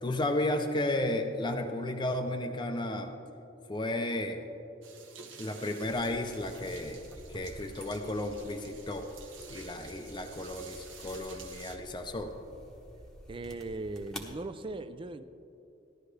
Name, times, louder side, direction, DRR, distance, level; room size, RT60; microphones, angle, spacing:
voice 1, 0.0-3.1 3.7-4.5 5.4-7.0 7.3-9.1 9.5-12.3, left 1 dB, 25° left, 4 dB, 0.5 m, -33 dB
sound 1, 4.8-11.8, right 4 dB, 80° right, 1.1 m, -50 dB
sound 2, 5.8-14.3, equal, 5° left, 1.0 m, -50 dB
voice 2, 13.3-15.2, right 2 dB, 25° right, 12 dB, 0.4 m, -39 dB
15.0 x 11.5 x 3.3 m, 2.8 s
head